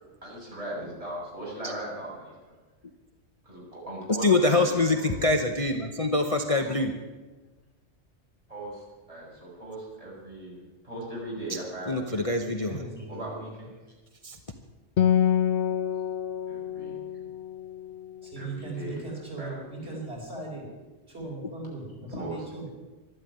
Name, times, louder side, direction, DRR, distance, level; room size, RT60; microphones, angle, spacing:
voice 1, 0.2-2.5 3.4-4.3 4.5-5.1 6.5-6.7 8.5-12.3 13.1-13.7 15.6-15.8 16.5-17.3 18.4-19.0 19.4-20.0 22.1-22.4, right 1 dB, 30° right, -5 dB, 7.2 m, -39 dB
voice 2, 4.1-7.0 11.9-12.8 14.2-14.4, left 2 dB, 30° left, 4 dB, 1.0 m, -24 dB
voice 3, 12.4-13.6 18.2-20.7 21.1-22.7, right 3 dB, 60° right, -2 dB, 5.2 m, -39 dB
Acoustic guitar, 15.0-18.7, left 9 dB, 60° left, 0.8 m, -27 dB
12.5 x 12.5 x 9.4 m, 1.2 s
omnidirectional pair, 1.2 m